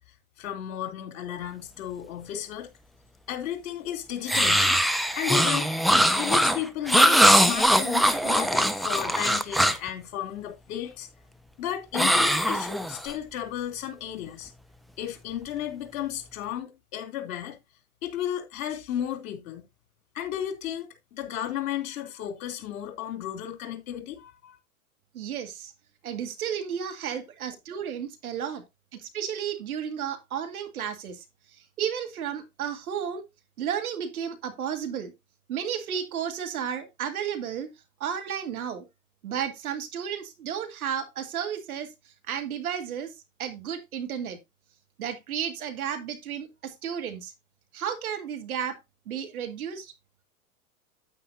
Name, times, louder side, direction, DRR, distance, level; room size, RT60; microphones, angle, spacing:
voice 1, 0.4-2.7 3.3-4.8 5.1-5.7 6.1-11.1 11.6-14.5 15.0-17.6 18.0-19.6 20.1-24.6, left 11 dB, 60° left, 3.0 m, -34 dB
sound 1, 4.3-9.9 11.9-13.1, equal, ahead, 0.5 m, -21 dB
voice 2, 25.1-25.7 26.0-28.6 28.9-31.2 31.5-33.2 33.6-35.1 35.5-37.7 38.0-38.8 39.2-41.9 42.3-43.1 43.4-44.4 45.0-47.3 47.7-48.8 49.1-49.9, right 8 dB, 75° right, 2.2 m, -33 dB
9.5 x 9.2 x 2.7 m
hypercardioid pair, 100°, 43 cm